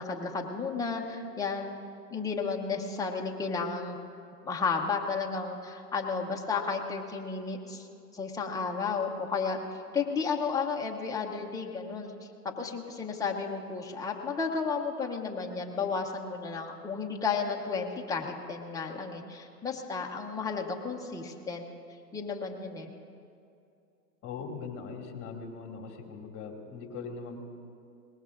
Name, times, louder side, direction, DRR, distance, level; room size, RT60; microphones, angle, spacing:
voice 1, 0.0-1.7 2.1-4.0 4.4-7.9 8.1-21.7 22.1-22.9, left 5 dB, 5° left, 0 dB, 0.9 m, -33 dB
voice 2, 24.2-27.4, left 5 dB, 25° left, 1 dB, 2.4 m, -40 dB
22.0 x 20.0 x 2.6 m, 2.5 s
hypercardioid pair, 130°, 50 cm